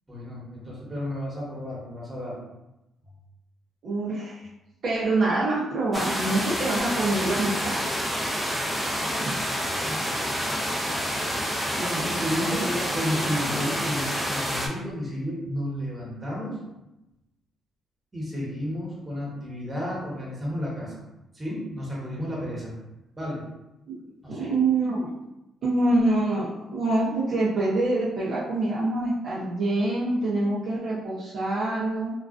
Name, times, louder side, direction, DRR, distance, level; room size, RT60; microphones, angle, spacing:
voice 1, 0.1-2.4 8.6-10.4 11.9-16.6 18.1-21.0 21.3-22.7 23.2-23.5 24.2-24.5, equal, 20° right, -6 dB, 1.1 m, -32 dB
voice 2, 3.8-4.4 4.8-7.8 11.8-12.1 12.4-13.3 23.9-24.0 24.3-25.2 25.6-32.1, right 2 dB, 60° right, -6 dB, 0.5 m, -26 dB
sound 1, 5.9-14.7, equal, ahead, 0.5 m, -28 dB
2.3 x 2.2 x 2.4 m, 0.94 s
cardioid pair, 90°, 0 cm